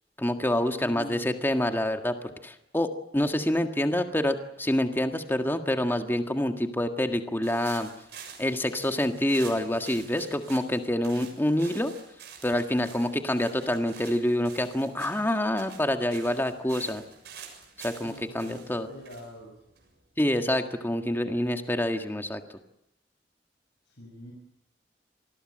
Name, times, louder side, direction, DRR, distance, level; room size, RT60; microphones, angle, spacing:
voice 1, 0.2-7.9 8.4-11.9 12.4-17.0 17.8-18.9 20.2-22.4, left 1 dB, 15° left, 6 dB, 1.7 m, -27 dB
voice 2, 0.8-1.4 18.0-19.6 23.8-24.3, equal, 90° left, 0 dB, 6.7 m, -44 dB
sound 1, 7.4-20.2, right 7 dB, 70° right, 7.2 m, -48 dB
27.5 x 20.5 x 7.6 m, 0.81 s
head